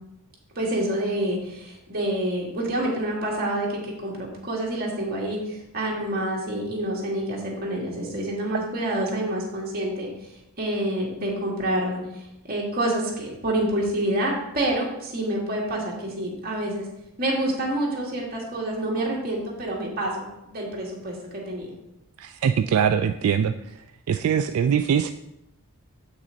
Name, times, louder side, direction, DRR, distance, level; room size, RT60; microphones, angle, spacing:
voice 1, 0.6-10.3 10.6-16.9 17.2-21.7, right 1 dB, 40° right, -3 dB, 2.0 m, -27 dB
voice 2, 22.2-23.5 24.1-25.1, right 7 dB, 75° right, 9 dB, 0.3 m, -22 dB
7.6 x 6.0 x 4.0 m, 0.89 s
head